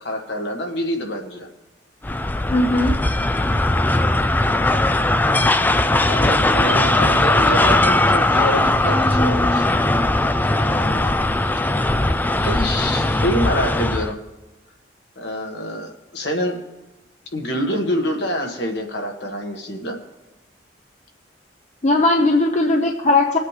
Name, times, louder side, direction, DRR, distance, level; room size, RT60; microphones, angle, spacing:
voice 1, 0.0-1.5 6.0-9.7 10.5-11.2 12.4-14.2 15.2-16.6 17.3-20.0, equal, 65° left, 2 dB, 1.7 m, -26 dB
sound 1, 2.0-14.1, left 2 dB, 10° left, 0.4 m, -19 dB
voice 2, 2.5-2.9 21.8-23.4, left 2 dB, 40° left, 3 dB, 0.8 m, -17 dB
21.5 x 8.2 x 3.3 m, 1.1 s
head